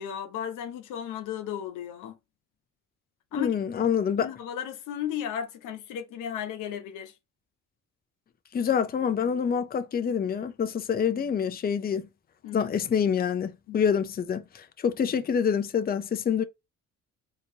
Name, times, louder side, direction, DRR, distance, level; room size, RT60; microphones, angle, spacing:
voice 1, 0.0-2.2 3.3-3.5 4.2-7.1 12.4-12.7 13.7-13.8, left 9 dB, 90° left, 0.7 m, -35 dB
voice 2, 3.3-4.3 8.5-12.1 12.5-16.4, left 7 dB, 30° left, 0.5 m, -26 dB
3.9 x 2.9 x 2.7 m
cardioid pair, 90°, 30 cm